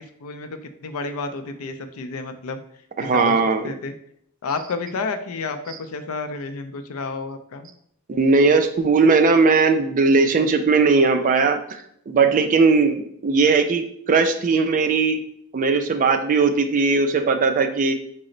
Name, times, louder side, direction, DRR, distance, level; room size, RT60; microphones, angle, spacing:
voice 1, 0.0-2.6 3.0-3.3 3.6-3.9 4.4-7.7, left 4 dB, 70° left, 8 dB, 0.4 m, -31 dB
voice 2, 3.0-3.7 8.1-11.8 12.1-15.2 15.5-17.9, right 4 dB, 35° right, 7 dB, 0.3 m, -18 dB
4.1 x 2.0 x 3.7 m, 0.69 s
head